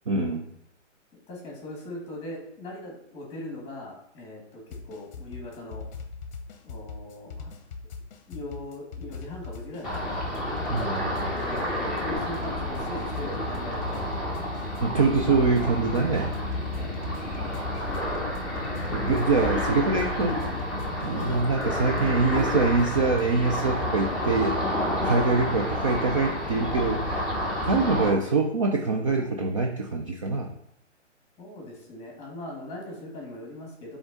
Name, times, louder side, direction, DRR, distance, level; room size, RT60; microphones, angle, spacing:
voice 1, 0.1-0.4 10.7-11.3 14.8-16.3 18.9-20.4 21.0-24.6 25.0-27.2 27.6-30.5, right 3 dB, 30° right, 2 dB, 0.4 m, -24 dB
voice 2, 1.1-5.8 6.6-7.5 8.3-10.2 11.3-14.0 16.8-17.0 31.4-34.0, left 1 dB, 15° left, -1 dB, 1.8 m, -40 dB
sound 1, 4.7-24.0, left 4 dB, 35° left, 0.9 m, -40 dB
Ocean, 9.8-28.1, left 1 dB, ahead, 0.9 m, -30 dB
7.0 x 3.6 x 3.9 m, 0.75 s
hypercardioid pair, 150°, 37 cm